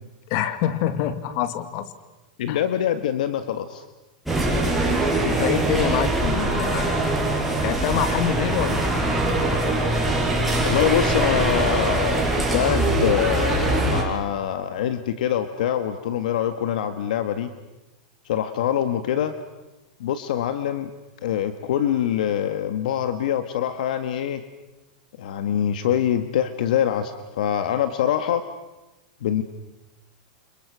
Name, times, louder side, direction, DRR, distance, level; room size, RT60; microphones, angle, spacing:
voice 1, 0.3-1.9 2.5-2.6 5.2-7.0 7.6-8.9, left 11 dB, 50° left, 11 dB, 2.5 m, -26 dB
voice 2, 2.4-3.8 10.6-17.5 18.2-19.3 20.0-20.9 21.2-24.4 25.2-28.4 29.2-29.4, left 10 dB, 75° left, 10 dB, 1.7 m, -24 dB
sound 1, 4.3-14.0, right 2 dB, ahead, 7.0 m, -22 dB
29.5 x 27.0 x 6.3 m, 1.0 s
supercardioid pair, 135°, 4 cm